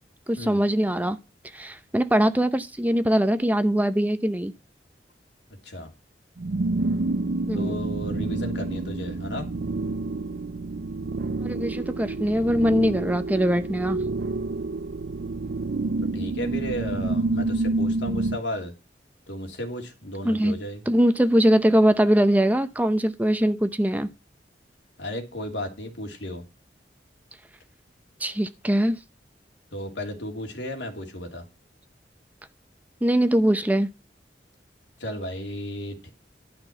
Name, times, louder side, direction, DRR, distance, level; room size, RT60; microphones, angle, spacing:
voice 1, 0.3-1.2 1.5-4.5 7.5-7.8 11.4-14.0 20.2-24.1 28.2-29.0 33.0-33.9, equal, 10° right, 0.7 m, -22 dB
sound 1, 6.4-18.4, right 2 dB, 65° right, 0.5 m, -28 dB
voice 2, 7.5-9.5 16.1-18.7 19.3-20.9 25.0-26.4 29.7-31.4 35.0-36.1, equal, 85° left, 2.8 m, -34 dB
11.5 x 6.1 x 5.9 m
head